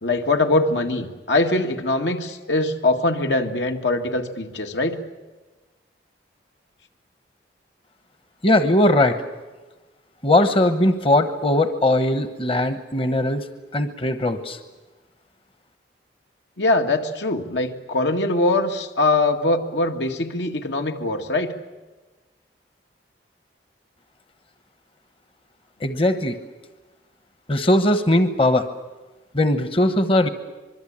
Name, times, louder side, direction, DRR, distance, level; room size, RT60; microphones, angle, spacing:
voice 1, 0.0-5.0 16.6-21.5, left 2 dB, 80° left, 5 dB, 2.0 m, -22 dB
voice 2, 8.4-9.2 10.2-13.5 13.7-14.6 25.8-26.4 27.5-28.7 29.3-30.3, left 1 dB, 30° left, 10 dB, 1.0 m, -19 dB
25.5 x 22.5 x 8.8 m, 1.2 s
head